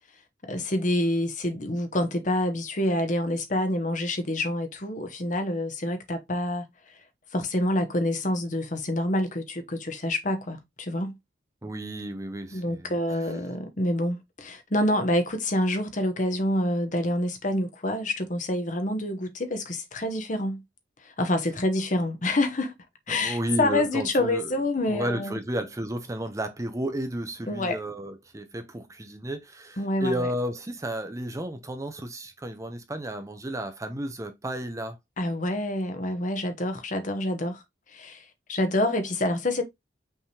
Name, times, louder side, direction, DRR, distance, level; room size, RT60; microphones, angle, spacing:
voice 1, 0.4-6.7 7.3-11.2 12.5-20.6 21.0-22.7 23.1-25.4 27.5-27.8 29.8-30.3 35.2-37.6 37.9-39.6, left 1 dB, 40° left, 0.9 m, -27 dB
voice 2, 11.6-12.9 13.2-13.3 23.1-24.5 24.9-35.0, right 1 dB, 15° right, 0.6 m, -32 dB
5.6 x 3.4 x 2.8 m
head